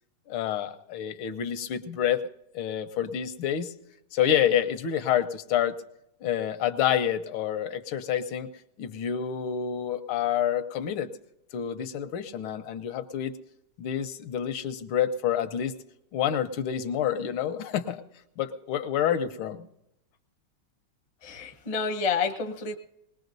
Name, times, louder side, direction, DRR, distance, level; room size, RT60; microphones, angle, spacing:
voice 1, 0.3-2.2 2.5-3.7 4.1-5.8 6.2-8.5 8.8-11.1 11.5-13.4 13.8-15.7 16.1-18.0 18.4-19.7, left 9 dB, 85° left, 11 dB, 1.6 m, -28 dB
voice 2, 21.2-22.8, left 5 dB, 45° left, 6 dB, 0.4 m, -29 dB
20.5 x 20.5 x 2.6 m, 0.83 s
omnidirectional pair, 2.2 m